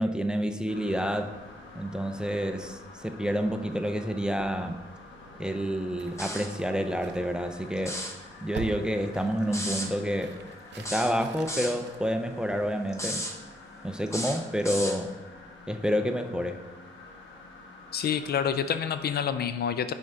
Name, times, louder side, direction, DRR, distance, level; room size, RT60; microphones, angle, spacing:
voice 1, 0.0-1.3 1.8-4.8 5.4-8.0 8.4-10.4 10.7-13.3 13.8-15.1 15.7-16.6, equal, 5° right, 7 dB, 0.5 m, -29 dB
sound 1, 0.7-19.3, left 2 dB, 70° left, 1.2 m, -48 dB
sound 2, 4.4-12.8, right 6 dB, 60° right, 0.7 m, -46 dB
sound 3, 6.2-6.6 7.8-8.2 9.5-9.9 10.8-11.8 12.9-13.4 14.1-15.0, equal, 15° left, 1.0 m, -34 dB
voice 2, 17.9-19.9, left 8 dB, 55° left, 11 dB, 0.5 m, -28 dB
6.1 x 4.4 x 5.4 m, 1.3 s
cardioid pair, 90°, 20 cm